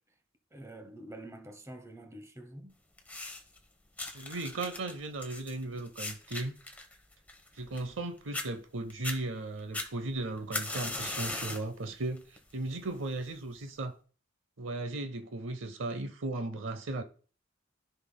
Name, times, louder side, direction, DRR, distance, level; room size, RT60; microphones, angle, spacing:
voice 1, 0.5-2.8, right 1 dB, 15° right, 0.8 m, -47 dB
sound 1, 3.0-3.6 4.0-8.0 8.3-8.5 8.9-9.2 9.7-11.7 12.2-12.5 13.3-13.4, left 2 dB, 10° left, 1.0 m, -38 dB
voice 2, 4.1-6.5 7.6-14.0 14.6-17.0, right 2 dB, 70° right, 0.7 m, -36 dB
13.5 x 5.5 x 2.2 m
head